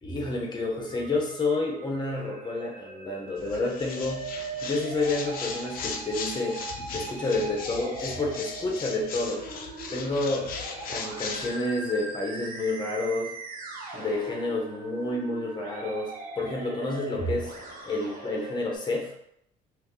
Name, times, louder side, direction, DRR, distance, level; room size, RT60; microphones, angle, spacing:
voice 1, 0.0-4.3 4.6-6.6 6.9-9.4 9.9-10.5 10.9-13.3 13.9-17.5 17.8-19.1, left 2 dB, 25° left, 0 dB, 0.9 m, -29 dB
Musical instrument, 0.8-18.8, right 3 dB, 60° right, 0.9 m, -40 dB
sound 1, 3.4-11.6, left 5 dB, 60° left, 0.5 m, -38 dB
2.6 x 2.6 x 3.7 m, 0.73 s
cardioid pair, 110°, 17 cm